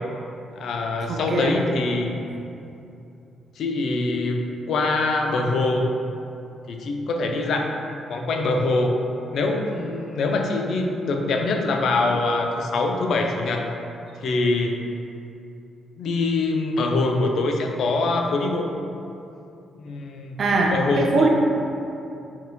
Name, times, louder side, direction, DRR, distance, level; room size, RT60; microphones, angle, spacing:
voice 1, 0.6-2.1 3.6-4.4 4.7-5.9 6.7-7.7 8.1-9.0 9.3-13.7 14.2-14.8 16.0-18.7 19.8-20.4 20.7-21.3, left 3 dB, 70° left, 2 dB, 0.4 m, -24 dB
voice 2, 1.1-1.6 20.4-21.3, right 3 dB, 50° right, 0 dB, 0.5 m, -21 dB
4.2 x 3.8 x 2.2 m, 2.7 s
cardioid pair, 95°, 0 cm